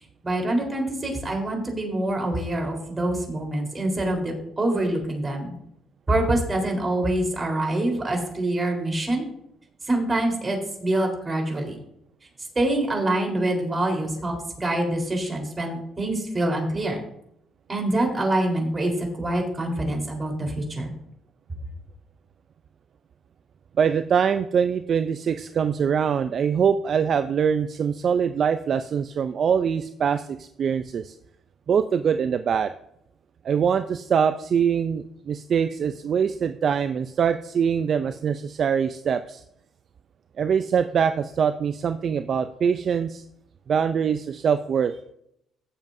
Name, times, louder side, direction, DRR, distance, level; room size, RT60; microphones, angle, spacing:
voice 1, 0.2-5.5 6.1-9.2 9.9-11.8 12.6-17.0 17.7-18.9 19.2-20.9, right 1 dB, 30° right, 1 dB, 4.0 m, -25 dB
voice 2, 23.8-31.1 31.7-32.7 33.4-39.4 40.4-43.2 43.7-45.0, right 7 dB, 55° right, 10 dB, 0.5 m, -23 dB
16.5 x 7.5 x 2.7 m, 0.75 s
supercardioid pair, 65°, 0 cm